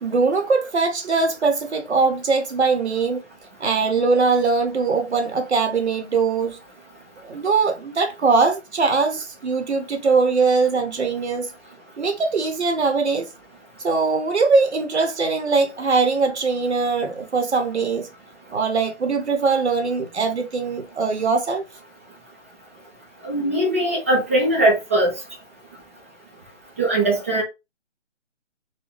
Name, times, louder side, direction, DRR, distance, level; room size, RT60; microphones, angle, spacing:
voice 1, 0.0-3.2 3.6-6.6 7.2-11.5 12.0-13.3 13.8-18.1 18.5-21.6, right 4 dB, 65° right, 0.9 m, -21 dB
voice 2, 23.2-25.1 26.8-27.4, right 1 dB, 10° right, 0.5 m, -20 dB
4.0 x 2.2 x 3.3 m
figure-of-eight pair, 145°, 37 cm